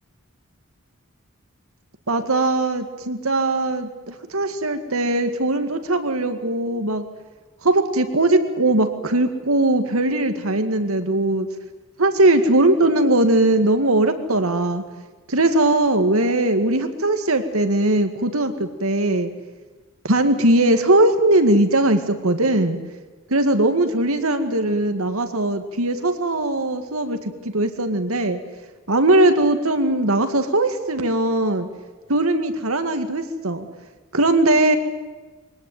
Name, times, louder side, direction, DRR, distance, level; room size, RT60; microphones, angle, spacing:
voice 1, 2.1-7.0 7.6-11.5 12.0-14.8 15.3-19.3 20.0-22.8 23.3-28.4 28.9-31.7 32.1-33.7 34.1-34.8, right 2 dB, 75° right, 8 dB, 2.2 m, -20 dB
23.0 x 18.5 x 9.3 m, 1.3 s
head